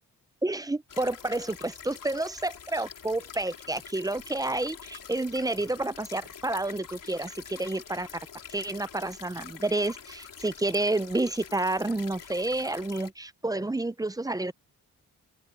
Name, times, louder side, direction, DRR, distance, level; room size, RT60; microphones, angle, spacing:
voice 1, 0.4-8.1 8.5-14.5, right 2 dB, 10° right, 0.5 m, -30 dB
sound 1, 0.9-13.1, left 7 dB, 65° left, 3.1 m, -46 dB
open air
wide cardioid pair, 120°, 35 cm